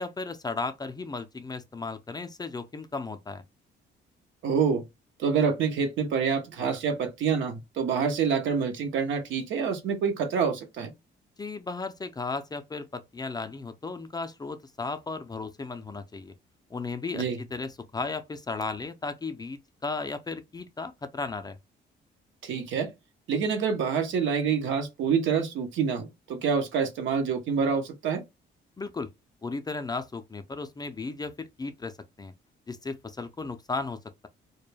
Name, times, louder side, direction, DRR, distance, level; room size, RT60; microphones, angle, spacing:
voice 1, 0.0-3.4 11.4-16.3 16.7-17.2 17.5-21.6 28.8-29.1 29.4-32.3 32.7-34.0, left 3 dB, 20° left, 0.4 m, -35 dB
voice 2, 4.4-4.8 5.2-10.9 17.1-17.4 22.4-22.9 23.3-28.2, right 6 dB, 75° right, 0.7 m, -27 dB
2.2 x 2.1 x 3.2 m
cardioid pair, 90°, 20 cm